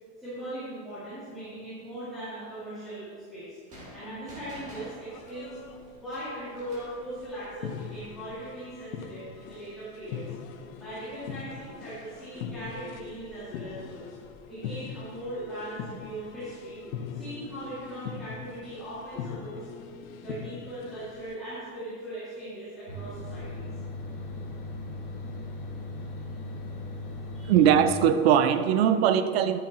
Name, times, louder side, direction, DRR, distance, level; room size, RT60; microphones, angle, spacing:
voice 1, 0.2-3.6 3.9-5.6 6.0-10.3 10.7-14.0 14.5-16.8 17.1-19.7 20.0-23.7 27.3-27.5, right 1 dB, ahead, -16 dB, 2.3 m, -39 dB
sound 1, 3.7-7.0, equal, 20° right, 1.9 m, -48 dB
sound 2, 5.1-21.3, left 7 dB, 90° left, 1.0 m, -42 dB
sound 3, 22.9-27.9, left 2 dB, 40° left, 1.5 m, -38 dB
voice 2, 27.5-29.6, right 9 dB, 50° right, 11 dB, 0.6 m, -21 dB
11.0 x 9.2 x 3.0 m, 2.2 s
supercardioid pair, 175°, 40 cm